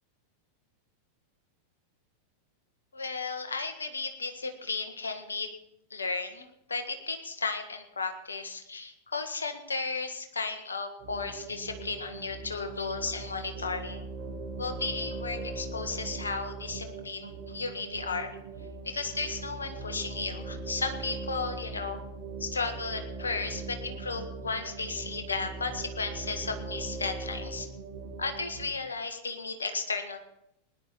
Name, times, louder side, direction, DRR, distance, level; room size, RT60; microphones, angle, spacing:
voice 1, 2.9-5.5 5.9-14.1 14.6-18.3 18.8-22.0 22.4-27.7 28.2-30.2, left 4 dB, 75° left, 7 dB, 1.6 m, -34 dB
sound 1, 11.0-28.6, right 3 dB, 30° right, 5.4 m, -40 dB
20.0 x 10.5 x 4.2 m, 0.83 s
figure-of-eight pair, 90°, 0 cm